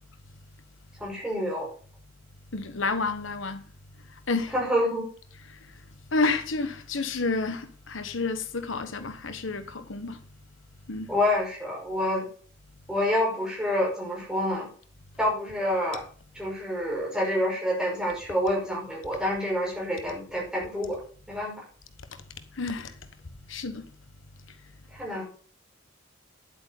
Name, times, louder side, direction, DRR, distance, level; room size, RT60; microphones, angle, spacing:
voice 1, 1.0-1.7 4.5-5.1 11.1-12.3 12.9-14.7 15.2-16.0 16.3-21.0 21.3-21.5 24.9-25.2, left 1 dB, 5° right, 5.6 m, -27 dB
voice 2, 2.5-3.6 4.3-4.5 6.1-10.2 10.9-11.1 22.6-22.9 23.5-23.8, left 3 dB, 80° left, 1.2 m, -29 dB
11.0 x 8.5 x 5.4 m
head